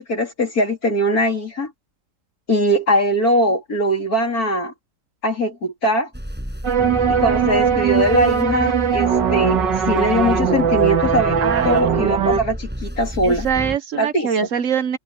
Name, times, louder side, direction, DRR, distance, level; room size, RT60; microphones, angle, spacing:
voice 1, 0.0-1.7 2.5-4.7 5.2-6.1 7.2-13.5 13.9-14.3, equal, 55° left, 3.8 m, -21 dB
sound 1, 6.1-13.8, equal, 5° right, 7.7 m, -30 dB
sound 2, 6.6-12.4, right 7 dB, 80° right, 2.2 m, -19 dB
voice 2, 11.4-11.8 13.2-15.0, right 7 dB, 50° right, 1.1 m, -23 dB
omnidirectional pair, 1.9 m